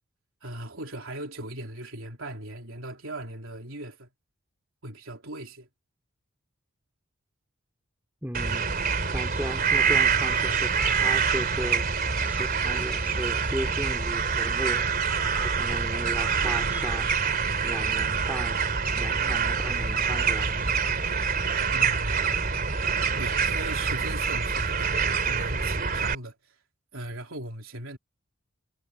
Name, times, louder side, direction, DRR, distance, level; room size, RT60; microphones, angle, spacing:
voice 1, 0.4-4.1 4.8-5.7 21.7-22.3 23.2-26.6 26.9-28.0, right 1 dB, 70° right, 3.7 m, -38 dB
voice 2, 8.2-8.7 9.1-11.8 12.2-14.9 15.4-17.1 17.6-18.6 19.0-20.7, equal, 10° right, 3.9 m, -36 dB
sound 1, 8.3-26.1, right 5 dB, 45° right, 3.1 m, -26 dB
head